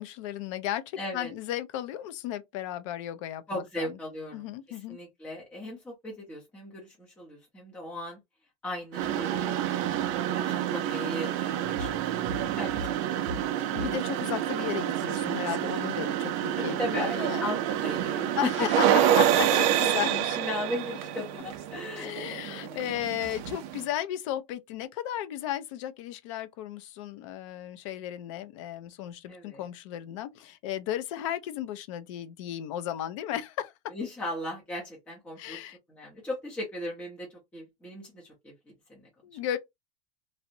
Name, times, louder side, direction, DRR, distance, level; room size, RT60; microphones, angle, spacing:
voice 1, 0.0-4.0 4.3-5.0 13.6-17.4 18.4-18.9 19.2-19.3 19.5-20.4 22.0-33.7 35.4-35.8 39.2-39.6, left 12 dB, 60° left, 0.4 m, -35 dB
voice 2, 1.0-1.3 3.5-8.2 8.6-9.6 10.3-13.5 16.6-18.3 18.6-19.0 20.4-22.4 22.7-23.0 29.3-29.7 33.9-35.6 35.9-38.5 38.9-39.1, left 1 dB, 5° left, 0.6 m, -38 dB
sound 1, 8.9-23.9, right 11 dB, 40° right, 0.4 m, -28 dB
sound 2, 11.6-14.8 16.5-21.4, right 1 dB, 60° right, 0.8 m, -45 dB
2.6 x 2.0 x 2.6 m
supercardioid pair, 170°, 18 cm